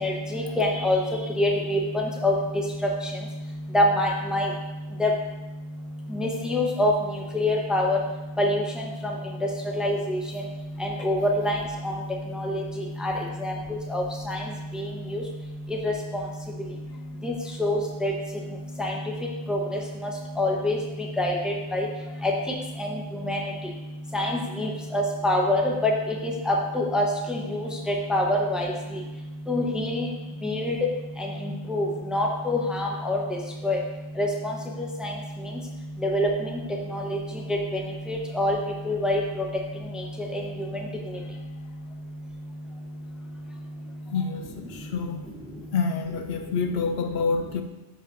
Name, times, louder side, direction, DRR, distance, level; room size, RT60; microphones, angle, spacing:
voice 1, 0.0-1.0 1.4-1.8 2.2-2.3 3.7-4.5 5.0-5.1 6.2-6.9 7.3-8.0 8.4-8.6 9.8-10.2 10.8-11.6 11.8-11.9 12.4-12.6 13.0-13.1 13.4-13.5 13.9-14.4 15.1-15.2 15.8-15.9 17.2-17.3 17.6-18.1 18.8-18.9 19.5-19.6 20.4-20.8 21.2-21.9 22.2-22.3 23.3-23.4 24.1-25.9 26.5-27.7 28.1-28.7 29.5-30.1 30.4-30.7 31.7-33.2 33.6-33.8 34.2-34.9 36.1-36.3 36.9-37.0 38.1-38.6 38.9-39.2, left 1 dB, ahead, -1 dB, 0.8 m, -24 dB
voice 2, 44.1-45.3 45.7-47.6, left 5 dB, 70° left, 6 dB, 0.8 m, -27 dB
12.5 x 5.1 x 2.6 m, 1.1 s
omnidirectional pair, 1.1 m